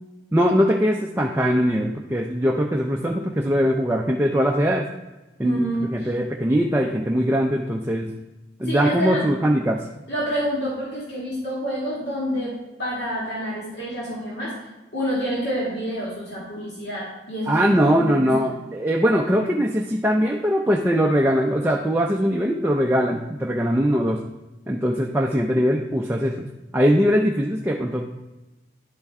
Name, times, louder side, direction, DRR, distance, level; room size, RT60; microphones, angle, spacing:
voice 1, 0.3-4.9 5.4-8.1 8.6-9.9 17.5-24.2 24.7-26.5 26.7-28.1, equal, 10° right, 1 dB, 0.4 m, -21 dB
voice 2, 5.4-6.1 8.6-9.2 10.1-12.5 12.8-14.5 14.9-17.6 17.8-18.3, equal, 70° left, -7 dB, 2.1 m, -28 dB
10.5 x 4.4 x 3.5 m, 1.1 s
head